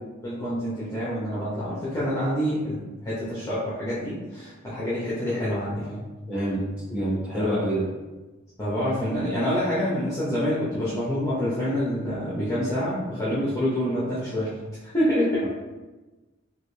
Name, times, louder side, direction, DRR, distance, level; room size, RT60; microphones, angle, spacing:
voice 1, 0.2-6.1 7.4-7.6 8.6-14.5 14.9-15.5, equal, 15° left, -10 dB, 0.7 m, -27 dB
voice 2, 6.3-6.6 6.9-7.8, equal, 5° right, -8 dB, 1.3 m, -26 dB
3.2 x 2.7 x 3.1 m, 1.2 s
head